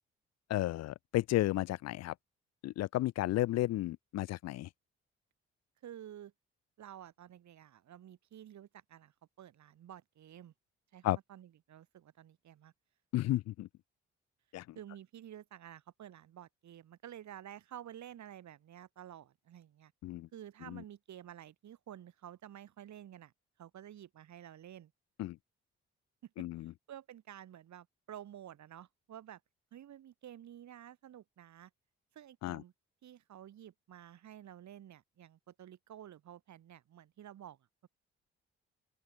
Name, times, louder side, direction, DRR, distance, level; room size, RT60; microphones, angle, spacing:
voice 1, 0.5-2.1 2.6-4.7 11.0-11.2 13.1-13.7 14.5-14.6 20.0-20.3 20.7-20.8 25.2-25.4 26.4-26.7 32.4-32.6, left 15 dB, 55° left, 0.5 m, -33 dB
voice 2, 5.8-6.3 6.8-10.5 10.9-12.7 14.7-19.9 20.3-23.3 23.6-24.9 26.2-26.5 26.9-29.4 29.7-31.7 32.1-32.7 33.0-37.9, right 11 dB, 65° right, 4.1 m, -51 dB
open air
hypercardioid pair, 45°, 31 cm